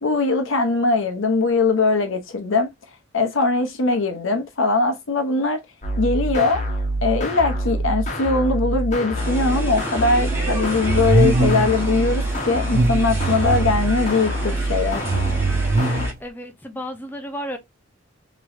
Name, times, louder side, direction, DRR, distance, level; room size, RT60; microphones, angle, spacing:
voice 1, 0.0-2.7 3.1-5.6 6.0-6.6 7.0-15.0, left 3 dB, 65° left, 0.8 m, -21 dB
sound 1, 5.8-16.1, right 1 dB, 35° left, 0.9 m, -25 dB
sound 2, 9.2-16.1, equal, 10° right, 1.1 m, -31 dB
sound 3, 10.9-11.8 12.6-13.9 14.8-16.2, right 3 dB, 45° right, 0.3 m, -22 dB
voice 2, 16.2-17.6, equal, 10° left, 0.5 m, -32 dB
3.0 x 3.0 x 2.5 m
head